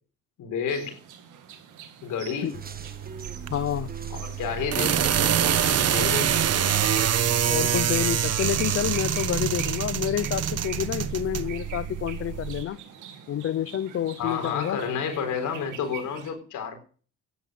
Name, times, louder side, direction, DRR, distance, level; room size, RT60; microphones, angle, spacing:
voice 1, 0.4-1.0 2.0-2.6 4.1-6.8 14.2-16.8, left 6 dB, 80° left, 4.2 m, -31 dB
sound 1, 0.7-16.3, right 9 dB, 85° right, 2.4 m, -44 dB
sound 2, 2.4-7.7, right 3 dB, 30° right, 1.3 m, -44 dB
sound 3, 2.5-12.6, right 9 dB, 55° right, 1.1 m, -26 dB
voice 2, 3.5-3.9 7.5-12.8 13.3-14.8, left 11 dB, 50° left, 0.6 m, -28 dB
13.5 x 10.5 x 6.3 m
cardioid pair, 90°, 30 cm